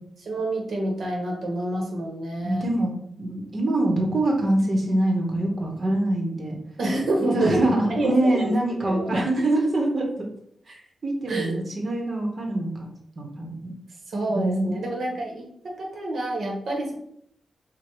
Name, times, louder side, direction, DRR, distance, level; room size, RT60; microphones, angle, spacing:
voice 1, 0.2-2.7 6.8-8.5 8.9-9.3 11.3-11.6 14.1-15.4 15.8-16.9, right 1 dB, 75° right, 0 dB, 1.0 m, -27 dB
voice 2, 2.4-2.9 3.2-6.5 7.3-10.3 10.7-10.8 11.0-12.7 13.2-13.7 14.3-14.7, right 1 dB, 40° right, 1 dB, 1.1 m, -24 dB
4.6 x 2.3 x 4.6 m, 0.70 s
wide cardioid pair, 110°, 0 cm